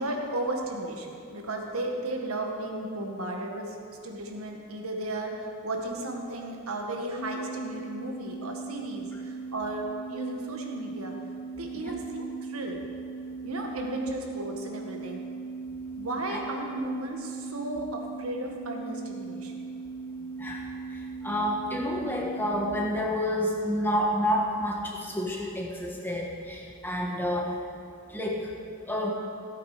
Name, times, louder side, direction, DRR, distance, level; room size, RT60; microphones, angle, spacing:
voice 1, 0.0-11.2 11.6-12.8 13.4-15.2 16.0-19.7, right 2 dB, 85° right, 1 dB, 1.7 m, -35 dB
sound 1, 7.2-22.9, right 4 dB, 85° left, 0.7 m, -38 dB
voice 2, 21.2-27.5 28.1-28.5 28.9-29.1, equal, 10° left, -1 dB, 1.5 m, -29 dB
17.0 x 8.6 x 5.1 m, 2.5 s
head